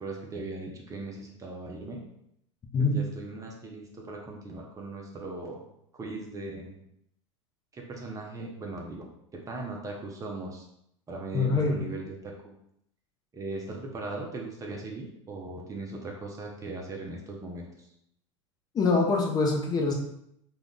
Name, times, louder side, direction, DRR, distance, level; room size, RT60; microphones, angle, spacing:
voice 1, 0.0-2.1 2.8-5.6 5.9-6.8 7.7-10.7 11.1-12.6 13.3-17.9, right 2 dB, 20° right, 0 dB, 0.6 m, -39 dB
voice 2, 11.3-11.9 18.7-19.9, left 3 dB, 25° left, 0 dB, 0.6 m, -24 dB
2.4 x 2.3 x 3.6 m, 0.74 s
hypercardioid pair, 95°, 16 cm